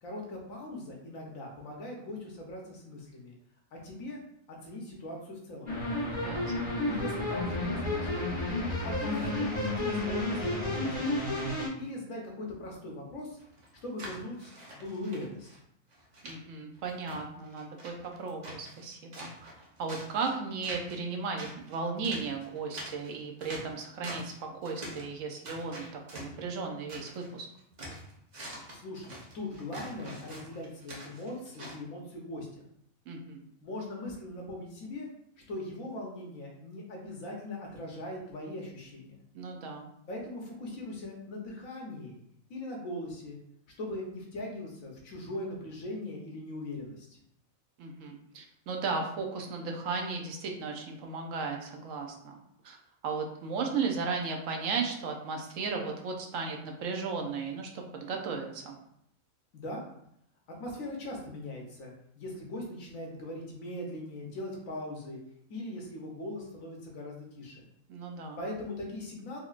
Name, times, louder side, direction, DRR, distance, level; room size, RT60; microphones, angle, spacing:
voice 1, 0.0-3.4 3.7-4.2 4.5-5.7 6.9-8.3 8.8-11.3 11.8-13.4 13.8-15.5 28.7-32.6 33.6-35.1 35.5-39.2 40.1-42.2 42.5-43.4 43.8-47.2 59.5-59.8 60.6-65.2 65.5-67.6 68.4-69.4, left 1 dB, 80° left, -1 dB, 1.3 m, -40 dB
sound 1, 5.7-11.7, left 1 dB, 40° left, 1.5 m, -31 dB
voice 2, 6.2-6.8 16.2-19.5 19.8-27.5 33.1-33.4 39.3-39.9 47.8-52.4 52.6-58.7 67.9-68.4, right 4 dB, 75° right, 2 dB, 1.0 m, -35 dB
sound 2, 13.4-15.6 15.9-16.3 16.7-18.9 19.1-20.3 20.6-21.1 21.4-24.4 24.6-25.1 25.4-27.3 27.6-31.8, right 1 dB, 40° right, 0.8 m, -45 dB
4.2 x 2.7 x 2.4 m, 0.73 s
omnidirectional pair, 1.4 m